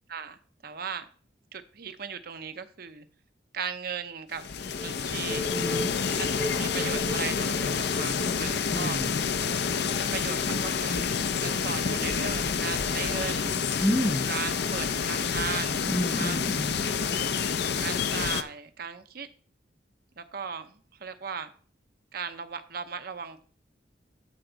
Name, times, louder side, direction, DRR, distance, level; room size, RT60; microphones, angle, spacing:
voice 1, 0.1-1.1 1.5-3.1 3.5-4.4 4.8-5.5 6.2-9.0 9.9-13.5 14.3-16.4 16.7-17.0 17.8-19.3 20.2-21.5 22.1-23.4, right 6 dB, 55° right, 0.7 m, -37 dB
sound 1, 4.3-18.4, left 6 dB, 65° left, 0.5 m, -28 dB
sound 2, 4.8-8.6 9.1-9.2 9.6-9.7, left 1 dB, 25° right, 0.9 m, -37 dB
voice 2, 5.5-5.9 8.7-9.1 13.8-14.3 15.9-16.8, equal, 10° left, 0.6 m, -29 dB
12.5 x 4.5 x 3.9 m
head